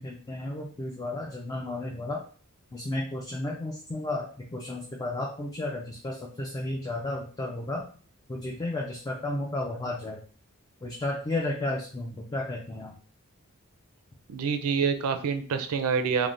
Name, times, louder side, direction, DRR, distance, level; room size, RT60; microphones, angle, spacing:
voice 1, 0.0-2.2 2.7-7.9 8.3-10.2 10.8-12.9, left 2 dB, 15° left, -1 dB, 0.3 m, -33 dB
voice 2, 14.3-16.3, right 6 dB, 80° right, 8 dB, 0.4 m, -27 dB
3.2 x 2.1 x 2.5 m, 0.42 s
head